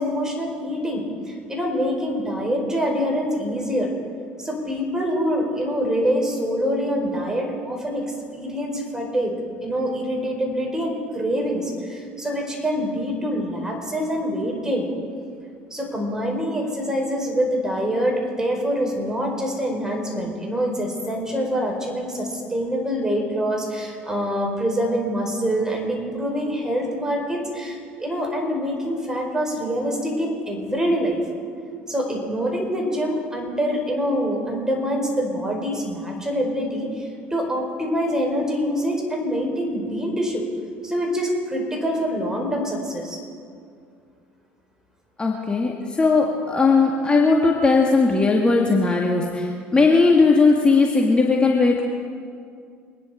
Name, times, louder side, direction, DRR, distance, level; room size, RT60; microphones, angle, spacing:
voice 1, 0.0-3.9 4.4-9.3 9.6-14.9 15.7-31.2 31.9-40.4 40.8-43.2, equal, 15° right, 0 dB, 4.9 m, -25 dB
voice 2, 45.2-51.8, left 3 dB, 20° left, 0 dB, 1.9 m, -18 dB
25.5 x 10.5 x 5.1 m, 2.3 s
supercardioid pair, 85°, 5 cm